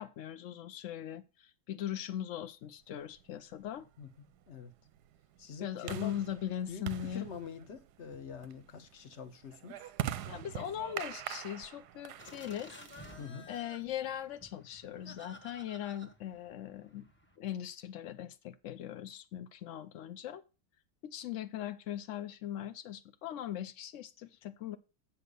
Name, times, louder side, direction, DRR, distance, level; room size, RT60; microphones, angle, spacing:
voice 1, 0.0-3.9 5.6-7.3 10.2-12.7 13.5-17.0 17.4-20.4 21.0-24.8, left 11 dB, 80° left, 0.6 m, -40 dB
sound 1, 3.2-13.6, right 12 dB, 70° right, 1.0 m, -44 dB
voice 2, 4.0-4.7 5.4-6.2 6.7-9.8 13.2-13.5, left 6 dB, 45° left, 1.0 m, -45 dB
sound 2, 12.2-17.4, left 1 dB, 10° left, 0.9 m, -54 dB
8.2 x 5.8 x 6.7 m
omnidirectional pair, 2.0 m